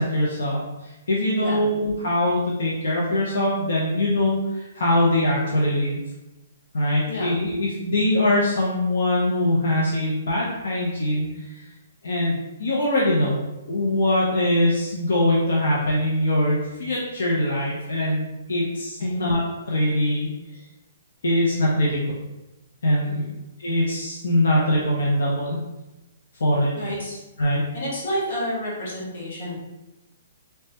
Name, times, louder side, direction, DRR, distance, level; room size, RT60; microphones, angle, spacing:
voice 1, 0.0-6.0 6.7-11.2 12.0-13.4 13.7-20.3 21.2-22.0 22.8-23.2 23.6-25.6 26.4-26.7 27.4-27.6, left 1 dB, 75° left, -4 dB, 0.6 m, -22 dB
voice 2, 7.1-7.4 19.0-19.2 23.0-23.3 26.7-27.2 27.7-29.5, equal, 45° left, -6 dB, 1.1 m, -30 dB
3.2 x 2.1 x 2.8 m, 1.0 s
hypercardioid pair, 180°, 0 cm